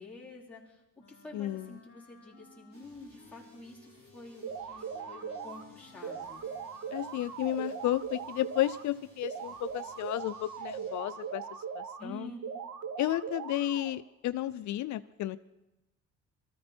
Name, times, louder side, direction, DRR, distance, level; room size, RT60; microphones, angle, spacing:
voice 1, 0.0-6.4 12.0-12.4, left 1 dB, 5° left, -6 dB, 3.9 m, -48 dB
Wind instrument woodwind instrument, 1.0-8.1, left 6 dB, 45° left, 3.2 m, -59 dB
voice 2, 1.3-1.7 6.9-11.4 11.8-12.3 13.0-15.4, left 14 dB, 75° left, 13 dB, 0.5 m, -32 dB
sound 1, 2.7-12.4, right 1 dB, 45° right, 5.0 m, -62 dB
sound 2, 4.4-5.6 6.0-8.8 9.2-12.0 12.4-14.0, right 6 dB, 80° right, 1.1 m, -40 dB
23.5 x 14.0 x 4.4 m, 0.95 s
cardioid pair, 140°, 29 cm